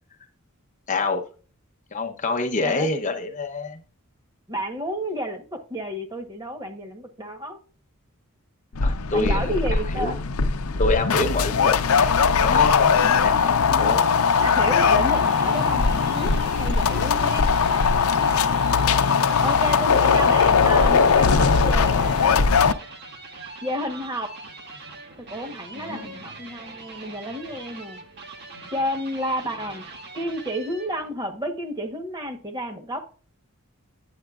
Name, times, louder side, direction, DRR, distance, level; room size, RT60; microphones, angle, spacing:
voice 1, 0.9-1.2 1.9-3.8 8.8-10.2 10.8-14.0 25.7-26.1, left 2 dB, 35° left, 0.8 m, -27 dB
voice 2, 4.5-7.6 9.1-10.2 14.4-17.5 19.4-22.4 23.6-24.3 25.2-28.0 28.7-29.8 30.1-33.1, equal, 20° right, 1.0 m, -31 dB
sound 1, 8.8-22.7, left 5 dB, 85° left, 0.6 m, -20 dB
sound 2, 14.6-31.1, right 3 dB, 50° right, 1.5 m, -42 dB
9.0 x 7.7 x 2.4 m
head